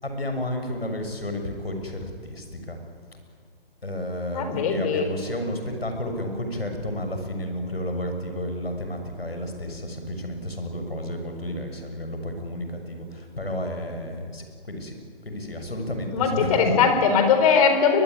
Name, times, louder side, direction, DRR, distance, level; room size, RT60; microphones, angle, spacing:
voice 1, 0.0-2.8 3.8-15.0 15.2-16.7, left 1 dB, 85° left, 5 dB, 6.5 m, -31 dB
voice 2, 4.3-5.1 16.1-18.0, left 6 dB, 35° left, 6 dB, 4.2 m, -20 dB
22.5 x 21.0 x 10.0 m, 2.1 s
figure-of-eight pair, 140°, 29 cm